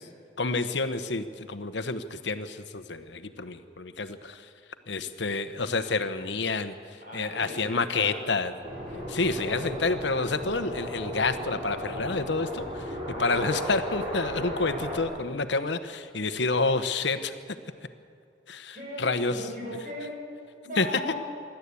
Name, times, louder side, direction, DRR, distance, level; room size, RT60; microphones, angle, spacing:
voice 1, 0.4-4.5 4.9-8.5 9.1-17.3 18.5-19.4 20.8-20.9, left 3 dB, 75° left, 11 dB, 1.0 m, -29 dB
voice 2, 7.0-8.3 18.7-20.2 20.6-21.2, left 1 dB, 50° right, -3 dB, 7.2 m, -38 dB
sound 1, 8.6-15.0, equal, 30° right, 4.3 m, -35 dB
26.5 x 12.0 x 8.4 m, 2.4 s
head